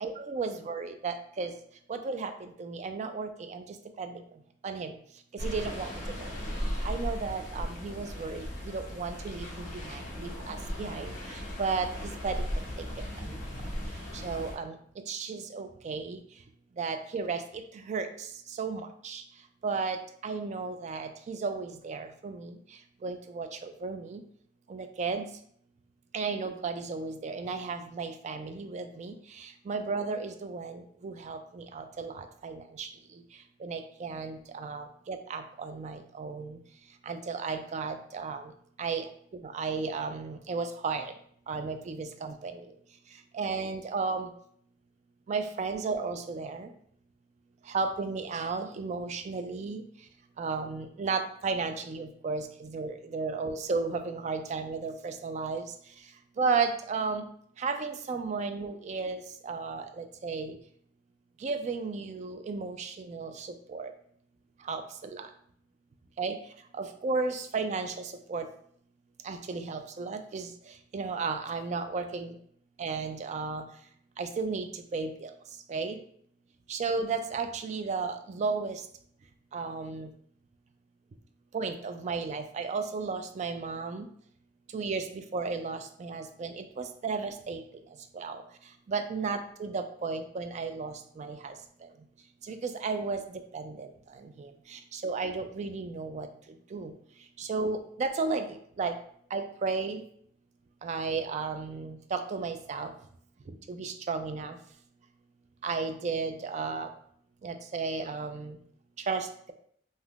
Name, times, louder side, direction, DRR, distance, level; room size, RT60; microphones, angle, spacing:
voice 1, 0.0-1.5 1.9-2.3 2.6-3.6 4.0-4.2 4.6-4.9 5.4-5.9 6.2-6.3 6.8-11.1 11.6-11.9 12.2-12.4 14.2-14.7 15.1-16.2 16.8-17.4 17.9-18.1 18.6-19.2 19.6-20.0 20.2-22.5 23.0-24.2 24.7-25.3 26.1-29.1 29.7-32.9 33.6-36.6 37.1-38.4 38.8-39.0 39.5-41.1 41.5-42.5 43.3-44.3 45.3-46.7 47.7-49.8 50.4-55.6 56.4-57.3 57.6-60.5 61.4-63.9 64.7-65.3 66.2-66.4 66.8-67.9 68.3-68.5 69.3-70.5 70.9-72.3 72.8-73.6 74.2-74.7 74.9-75.3 75.7-76.0 76.7-78.8 79.5-80.1 81.5-84.1 84.7-87.6 88.2-88.4 88.9-91.5 92.5-93.2 93.5-93.9 94.7-96.3 96.7-96.9 97.4-98.5 98.8-98.9 99.3-100.0 100.8-102.9 103.7-104.5 105.6-106.9 107.4-108.6 109.1-109.5, right 4 dB, 40° right, 7 dB, 0.3 m, -33 dB
sound 1, 5.4-14.5, equal, 45° left, 0.8 m, -37 dB
3.5 x 2.7 x 2.4 m, 0.63 s
head